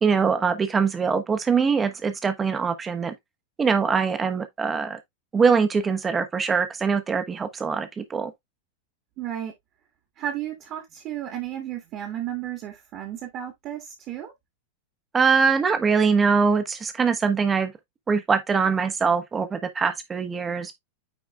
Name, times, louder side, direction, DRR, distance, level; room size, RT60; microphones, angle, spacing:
voice 1, 0.0-3.1 3.6-5.0 5.3-8.3 15.1-17.7 18.1-20.7, right 5 dB, 20° right, 1.2 m, -23 dB
voice 2, 9.2-9.5 10.2-14.3, right 11 dB, 35° right, 1.8 m, -33 dB
9.1 x 4.6 x 2.3 m
figure-of-eight pair, 90°, 0 cm